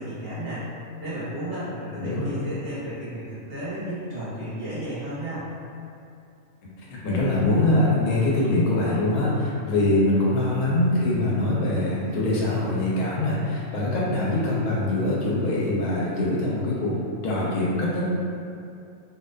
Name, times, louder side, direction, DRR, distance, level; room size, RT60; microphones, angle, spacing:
voice 1, 0.0-5.5, equal, 45° right, -13 dB, 1.0 m, -33 dB
voice 2, 2.0-2.3 6.8-17.0 17.2-18.1, left 2 dB, 85° left, -6 dB, 1.1 m, -23 dB
2.7 x 2.1 x 2.3 m, 2.5 s
omnidirectional pair, 1.5 m